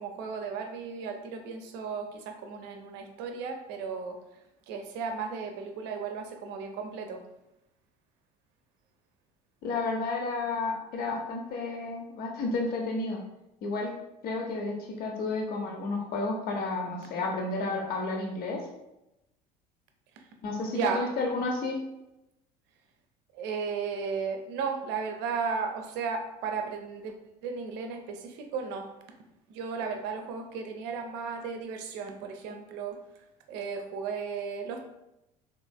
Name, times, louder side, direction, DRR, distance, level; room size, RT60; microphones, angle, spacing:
voice 1, 0.0-4.2 4.7-7.2 20.2-20.3 20.7-21.1 23.3-28.9 29.5-33.0 33.5-34.8, right 5 dB, 55° right, 5 dB, 0.6 m, -35 dB
voice 2, 9.6-13.2 13.6-13.9 14.2-18.6 20.4-21.8, left 3 dB, 45° left, 0 dB, 0.7 m, -31 dB
3.2 x 3.0 x 2.2 m, 0.89 s
figure-of-eight pair, 65°, 21 cm